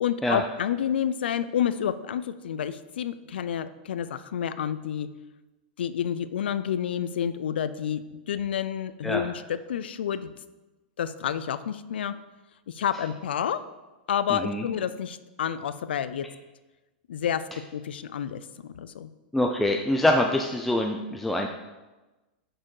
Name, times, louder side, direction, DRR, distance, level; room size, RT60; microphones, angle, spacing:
voice 1, 0.0-5.1 5.8-10.3 11.0-12.1 12.7-13.6 14.1-16.3 17.1-17.4 17.7-19.1, left 9 dB, 90° left, 14 dB, 0.4 m, -29 dB
voice 2, 14.3-14.6 19.3-21.5, left 1 dB, 5° left, 2 dB, 0.3 m, -24 dB
6.0 x 4.4 x 4.7 m, 1.1 s
supercardioid pair, 140°, 5 cm